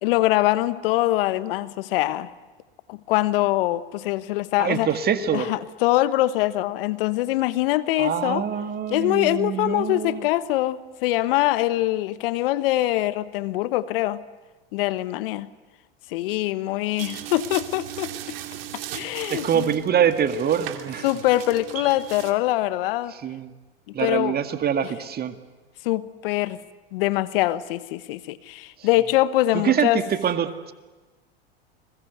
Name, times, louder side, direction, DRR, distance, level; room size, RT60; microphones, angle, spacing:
voice 1, 0.0-2.3 2.9-4.9 5.3-8.4 8.9-14.2 14.7-15.5 16.1-18.1 18.9-19.7 21.0-23.1 24.0-24.4 25.8-26.6 26.9-30.0, left 16 dB, 65° left, 15 dB, 1.2 m, -23 dB
voice 2, 4.6-5.5 8.0-10.3 19.2-21.1 23.1-23.5 23.9-25.3 28.8-28.9 29.5-30.7, right 8 dB, 30° right, 8 dB, 1.9 m, -25 dB
sound 1, 17.0-22.3, right 12 dB, 70° right, 2.6 m, -37 dB
30.0 x 21.5 x 8.1 m, 1.2 s
hypercardioid pair, 90°, 31 cm